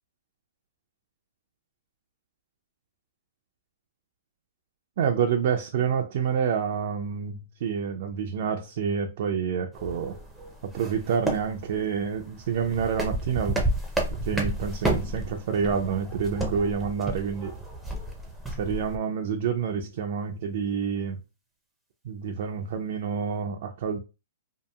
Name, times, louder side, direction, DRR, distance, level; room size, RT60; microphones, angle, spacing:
voice 1, 5.0-10.2 10.6-13.6 14.2-17.5 18.6-21.2 22.0-24.0, right 7 dB, 55° right, 0.4 m, -28 dB
sound 1, 9.7-19.0, right 1 dB, ahead, 0.6 m, -32 dB
2.8 x 2.4 x 2.3 m
hypercardioid pair, 150°, 0 cm